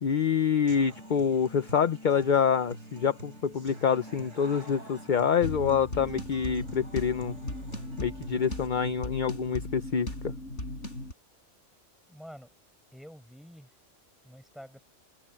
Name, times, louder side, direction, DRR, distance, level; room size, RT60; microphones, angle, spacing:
voice 1, 0.0-7.3 8.0-10.3, left 7 dB, 45° left, 0.8 m, -26 dB
Human voice / Acoustic guitar, 0.7-8.7, right 1 dB, 85° right, 5.0 m, -46 dB
sound 1, 5.4-11.1, left 1 dB, 70° left, 7.0 m, -37 dB
voice 2, 12.1-12.5 12.9-13.7 14.2-14.8, equal, ahead, 6.1 m, -48 dB
open air
omnidirectional pair, 1.3 m